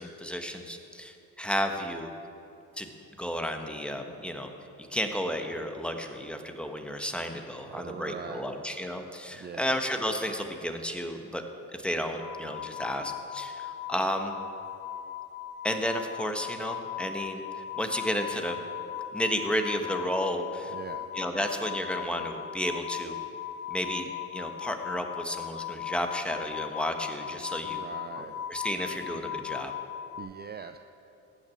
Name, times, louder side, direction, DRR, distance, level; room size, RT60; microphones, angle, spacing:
voice 1, 0.0-2.1 2.8-2.9 3.2-4.5 4.8-11.4 11.8-14.3 15.6-18.6 19.1-20.7 21.1-23.2 23.7-27.8 28.2-29.7, equal, 5° left, 5 dB, 1.2 m, -32 dB
voice 2, 7.6-8.5 9.3-9.7 20.7-21.1 27.6-28.4 30.2-30.8, right 7 dB, 30° right, 8 dB, 0.5 m, -42 dB
sound 1, 12.2-30.2, left 10 dB, 65° left, 3.0 m, -38 dB
15.5 x 6.1 x 8.5 m, 2.8 s
cardioid pair, 95°, 33 cm